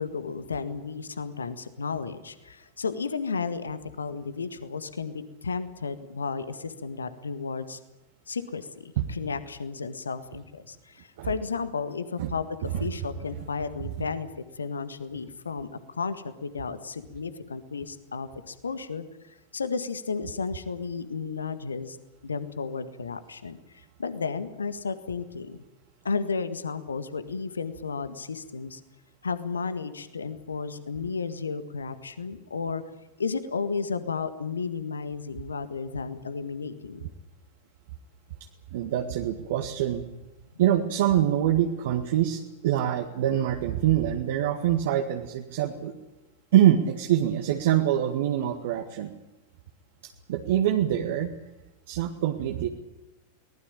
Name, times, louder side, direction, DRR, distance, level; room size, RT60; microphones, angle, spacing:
voice 1, 0.0-7.8 8.3-14.3 14.5-22.0 22.2-25.6 26.0-28.8 29.2-32.8 33.2-37.1, left 5 dB, 75° left, 12 dB, 1.8 m, -33 dB
voice 2, 38.7-40.1 40.6-45.9 46.5-49.1 50.3-51.3 51.9-52.7, right 11 dB, 55° right, 3 dB, 1.8 m, -24 dB
23.5 x 19.5 x 8.7 m, 1.0 s
figure-of-eight pair, 90°, 0 cm